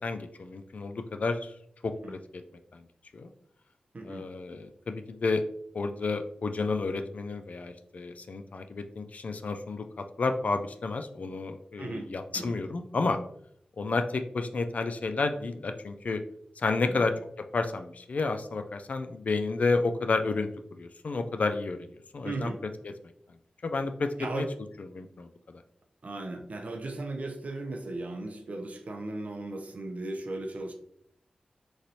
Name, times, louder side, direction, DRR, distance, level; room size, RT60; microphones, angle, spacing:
voice 1, 0.0-1.5 1.8-2.4 2.7-2.8 3.1-3.3 4.0-5.4 5.7-13.2 13.8-16.2 16.6-17.1 17.5-20.5 20.8-21.9 22.1-22.5 23.6-24.4 24.9-25.6, left 3 dB, 60° left, 7 dB, 0.3 m, -31 dB
voice 2, 22.2-22.6 24.2-24.5 26.0-30.7, right 2 dB, 60° right, 3 dB, 0.5 m, -36 dB
3.1 x 2.6 x 2.7 m, 0.68 s
cardioid pair, 40°, 3 cm